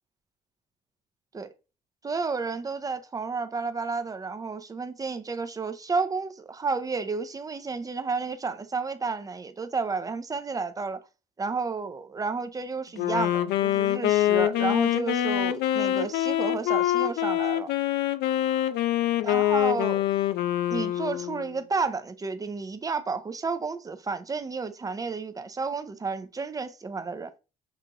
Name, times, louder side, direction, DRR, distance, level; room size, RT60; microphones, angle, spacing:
voice 1, 2.0-11.0 11.4-17.7 19.2-20.0 20.7-27.3, right 4 dB, 20° right, 0.5 m, -31 dB
Wind instrument woodwind instrument, 13.0-21.6, left 13 dB, 80° left, 0.4 m, -25 dB
6.7 x 2.4 x 2.9 m
cardioid pair, 110°, 17 cm